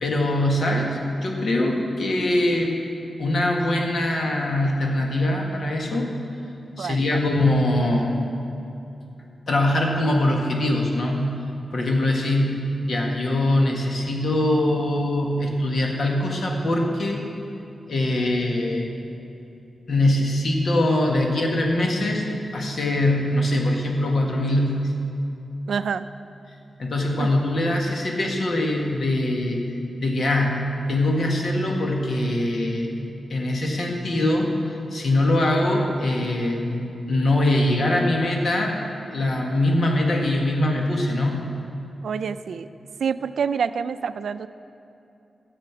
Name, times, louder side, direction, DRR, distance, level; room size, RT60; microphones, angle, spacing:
voice 1, 0.0-2.7 3.2-6.1 6.8-8.2 9.5-11.4 11.7-17.2 17.9-18.9 19.9-22.3 22.5-24.9 26.8-29.6 30.0-32.9 33.3-34.5 34.9-38.8 39.1-41.5, left 1 dB, 55° left, 1 dB, 1.7 m, -22 dB
voice 2, 6.8-7.3 25.7-26.1 27.2-27.3 42.0-42.7 43.0-44.5, right 6 dB, 80° right, 12 dB, 0.4 m, -27 dB
14.0 x 7.7 x 6.0 m, 2.8 s
wide cardioid pair, 125°, 0 cm